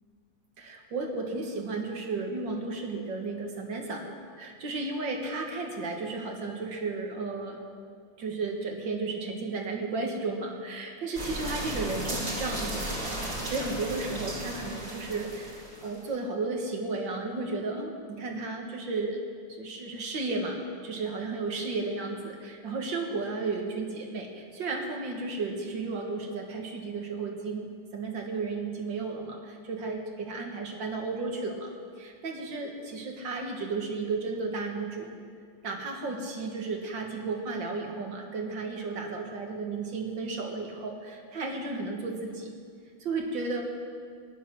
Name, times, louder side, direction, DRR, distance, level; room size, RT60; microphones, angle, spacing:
voice 1, 0.6-4.1 4.4-7.6 8.2-13.1 13.5-19.2 19.5-30.0 30.3-31.7 32.0-35.1 35.6-42.5 43.0-43.6, right 3 dB, 65° right, 2 dB, 2.4 m, -33 dB
sound 1, 11.2-16.0, right 1 dB, 40° right, 2.8 m, -35 dB
16.0 x 11.0 x 6.2 m, 2.1 s
omnidirectional pair, 2.2 m